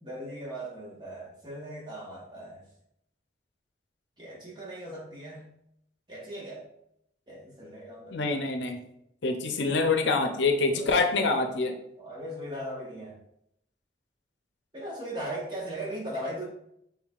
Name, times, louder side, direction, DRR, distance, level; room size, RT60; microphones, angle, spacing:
voice 1, 0.0-2.6 4.2-5.4 6.1-6.7 7.3-8.4 10.7-11.0 12.0-13.2 14.7-16.4, right 1 dB, 25° right, -4 dB, 1.2 m, -38 dB
voice 2, 8.1-8.8 9.2-11.8, left 3 dB, 80° left, 5 dB, 0.6 m, -26 dB
6.4 x 3.3 x 2.4 m, 0.76 s
head